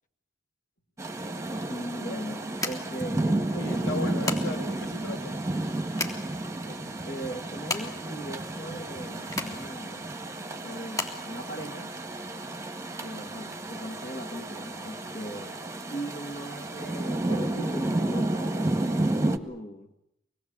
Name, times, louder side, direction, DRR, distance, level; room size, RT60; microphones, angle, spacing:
Rain, 1.0-19.4, right 2 dB, 15° right, 1.7 m, -32 dB
voice 1, 1.7-4.0 6.6-10.1 10.6-11.9 13.0-15.6 15.9-19.9, right 1 dB, 40° left, 5 dB, 1.8 m, -39 dB
sound 1, 2.6-12.3, left 2 dB, 20° left, 3.7 m, -38 dB
voice 2, 3.5-5.4, left 2 dB, 85° left, 3 dB, 6.1 m, -36 dB
26.5 x 20.5 x 8.9 m, 0.81 s
head